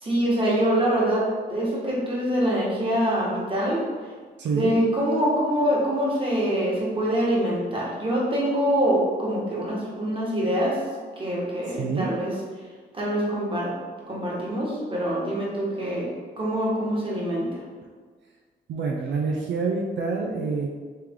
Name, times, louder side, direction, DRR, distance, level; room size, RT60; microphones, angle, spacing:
voice 1, 0.0-3.8 4.5-10.8 11.2-12.3 12.9-13.7 14.1-17.6, equal, 30° right, -5 dB, 1.4 m, -25 dB
voice 2, 4.4-4.7 11.7-12.1 18.7-20.7, right 4 dB, 80° right, -1 dB, 0.5 m, -27 dB
3.3 x 3.1 x 3.7 m, 1.5 s
cardioid pair, 75°, 18 cm